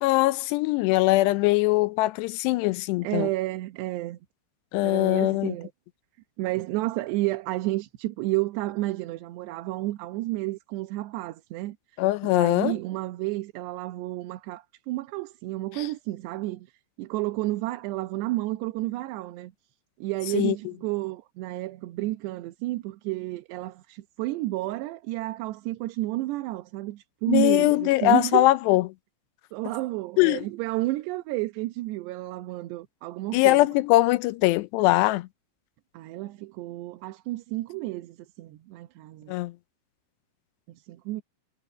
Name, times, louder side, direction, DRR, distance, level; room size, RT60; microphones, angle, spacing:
voice 1, 0.0-3.3 4.7-5.5 12.0-12.8 15.8-15.9 20.3-20.6 27.3-28.8 30.2-30.5 33.3-35.3 39.3-39.5, left 18 dB, 80° left, 2.7 m, -22 dB
voice 2, 3.0-4.2 4.8-5.7 6.4-11.8 12.2-16.7 17.0-19.5 20.0-28.5 29.5-33.6 35.9-39.3 40.9-41.2, right 18 dB, 75° right, 3.0 m, -31 dB
omnidirectional pair, 5.1 m